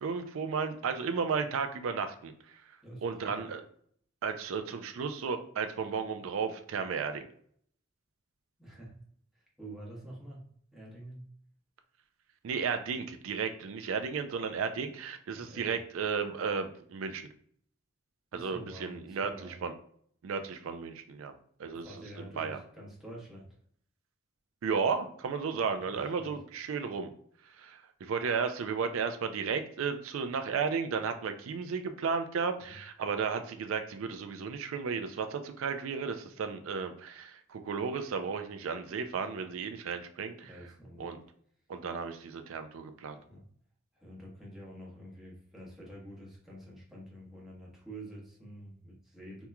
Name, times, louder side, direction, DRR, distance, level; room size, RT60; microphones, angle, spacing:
voice 1, 0.0-2.3 3.0-3.6 4.2-7.3 12.4-17.2 18.3-19.7 20.2-21.3 21.6-21.9 22.2-22.6 24.6-27.1 27.6-40.5 41.0-41.2 41.7-43.2, right 5 dB, 85° right, 8 dB, 0.4 m, -34 dB
voice 2, 2.8-3.4 8.6-9.0 9.3-11.3 15.3-15.8 18.3-19.6 21.7-23.5 25.9-26.3 32.5-32.8 40.4-41.1 43.3-43.4 43.9-49.4, right 1 dB, ahead, -5 dB, 1.1 m, -48 dB
3.4 x 2.9 x 2.2 m, 0.62 s
head